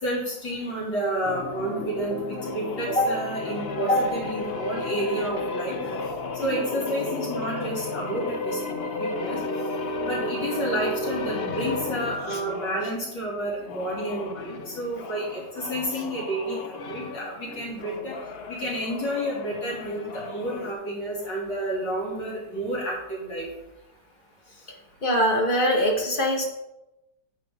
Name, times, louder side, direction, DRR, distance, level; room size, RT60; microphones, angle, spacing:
voice 1, 0.0-2.1 2.5-5.8 6.4-8.6 9.2-9.4 10.0-18.1 18.5-23.5, right 1 dB, 90° left, -5 dB, 3.6 m, -29 dB
sound 1, 1.2-12.9 13.6-20.7, left 2 dB, 50° left, 0.7 m, -33 dB
voice 2, 25.0-26.4, equal, 30° left, 1 dB, 1.6 m, -22 dB
9.9 x 7.5 x 3.7 m, 0.94 s
omnidirectional pair, 1.9 m